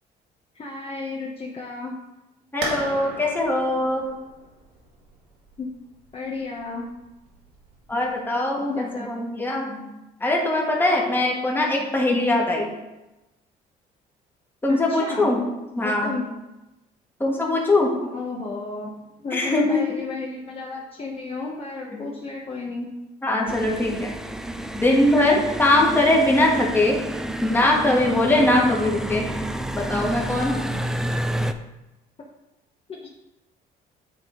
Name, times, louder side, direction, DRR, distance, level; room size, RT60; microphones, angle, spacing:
voice 1, 0.5-1.9 5.6-5.7 6.1-6.9 8.6-9.3 14.7-15.3 15.8-16.2 17.3-17.4 18.0-18.9 19.2-22.9 32.9-33.1, left 3 dB, 35° left, -2 dB, 0.9 m, -32 dB
voice 2, 2.5-4.1 7.9-9.9 10.2-12.7 14.6-15.4 15.8-16.2 17.2-17.9 19.3-19.8 21.9-22.1 23.2-24.1 24.7-27.0 27.4-29.3 29.8-30.6, left 1 dB, 10° left, -1 dB, 1.4 m, -21 dB
sound 1, 2.6-8.1, right 3 dB, 75° right, 1.6 m, -37 dB
sound 2, 23.5-31.5, right 1 dB, 5° right, 0.3 m, -30 dB
8.9 x 3.7 x 3.7 m, 0.99 s
cardioid pair, 110°, 17 cm